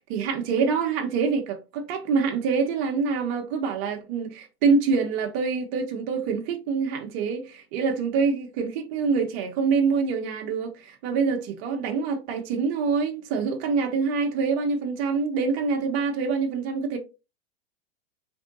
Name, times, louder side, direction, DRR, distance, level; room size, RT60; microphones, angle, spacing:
voice 1, 0.1-17.0, right 5 dB, 55° right, 0.9 m, -25 dB
3.5 x 2.7 x 2.6 m
supercardioid pair, 120°, 31 cm